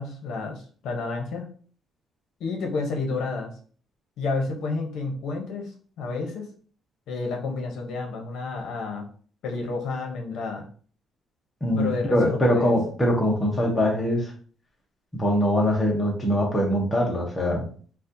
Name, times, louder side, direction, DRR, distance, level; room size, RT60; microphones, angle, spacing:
voice 1, 0.0-1.5 2.4-3.5 4.2-6.5 7.1-9.1 9.4-10.7 11.8-12.7, left 3 dB, 70° left, 2 dB, 0.7 m, -30 dB
voice 2, 11.6-14.3 15.1-17.6, equal, 10° left, -2 dB, 0.8 m, -23 dB
4.1 x 2.3 x 2.6 m, 0.44 s
cardioid pair, 175°, 0 cm